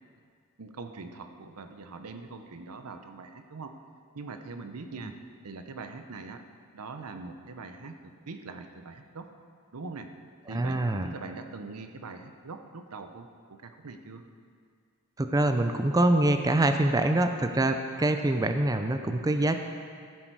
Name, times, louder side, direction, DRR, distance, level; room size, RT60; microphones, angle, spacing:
voice 1, 0.6-3.8 4.1-5.2 5.4-6.4 6.7-9.3 9.7-10.1 10.5-14.2, right 3 dB, 85° right, 7 dB, 0.8 m, -42 dB
voice 2, 10.5-11.1 15.2-19.6, right 1 dB, 15° right, 7 dB, 0.4 m, -25 dB
14.5 x 7.7 x 4.7 m, 2.1 s
head